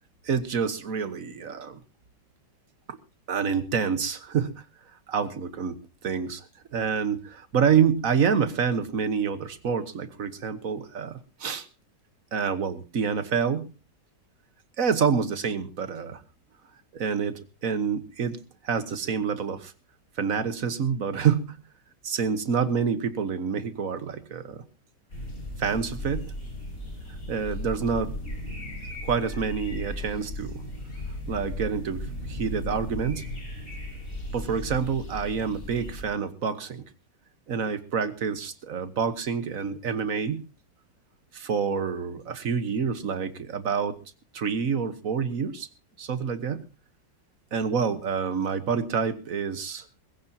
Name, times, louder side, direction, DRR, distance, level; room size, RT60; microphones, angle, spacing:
voice 1, 0.2-1.8 2.9-3.0 3.3-4.6 5.1-5.8 6.0-11.6 12.3-13.7 14.8-16.2 16.9-19.7 20.2-21.6 22.0-24.6 25.6-26.3 27.3-28.2 29.0-30.6 31.3-33.3 34.3-36.8 37.5-40.5 41.3-43.9 44.3-45.7 46.0-46.6 47.5-49.8, right 6 dB, 55° right, 12 dB, 1.5 m, -27 dB
sound 1, 25.1-36.1, left 1 dB, 50° left, 6.9 m, -36 dB
21.5 x 15.5 x 2.8 m, 0.32 s
omnidirectional pair, 1.9 m